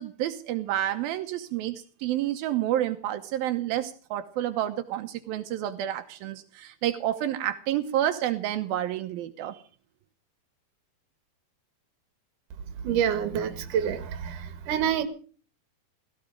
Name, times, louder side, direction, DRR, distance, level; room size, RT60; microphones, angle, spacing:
voice 1, 0.0-9.6, right 12 dB, 85° right, 6 dB, 2.8 m, -29 dB
voice 2, 12.8-15.0, right 9 dB, 65° right, 10 dB, 3.0 m, -27 dB
17.0 x 15.5 x 5.0 m, 0.41 s
omnidirectional pair, 4.1 m